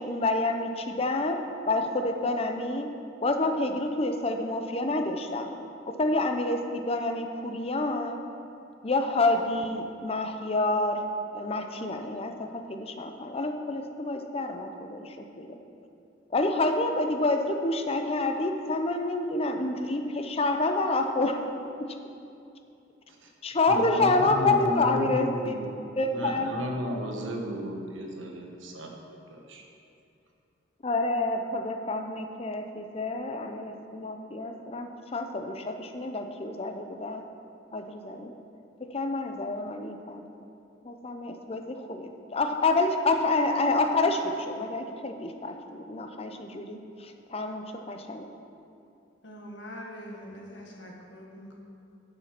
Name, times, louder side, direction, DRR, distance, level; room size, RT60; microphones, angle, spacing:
voice 1, 0.0-2.9 3.2-5.5 5.9-8.2 8.8-11.0 11.3-15.5 16.3-21.4 21.8-21.9 23.4-25.6 26.0-26.5 30.8-37.2 37.7-38.3 38.9-40.2 40.8-48.3, left 2 dB, 30° left, 5 dB, 0.6 m, -28 dB
voice 2, 23.7-25.7 26.1-29.6, equal, 90° right, 1 dB, 1.3 m, -34 dB
voice 3, 49.2-51.6, equal, 65° left, -1 dB, 1.6 m, -43 dB
8.3 x 6.6 x 6.0 m, 2.6 s
head